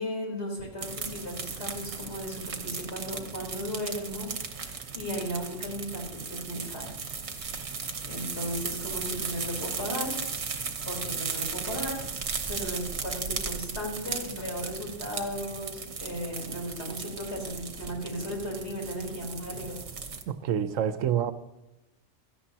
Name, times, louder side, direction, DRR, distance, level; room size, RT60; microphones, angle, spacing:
voice 1, 0.0-6.9 7.5-10.2 10.9-12.0 12.5-19.8, equal, 55° left, -1 dB, 4.0 m, -36 dB
sound 1, 0.8-20.2, right 5 dB, 60° right, 1.3 m, -36 dB
voice 2, 20.3-21.3, right 9 dB, 85° right, 12 dB, 1.1 m, -27 dB
16.5 x 13.5 x 2.8 m, 0.94 s
omnidirectional pair, 1.3 m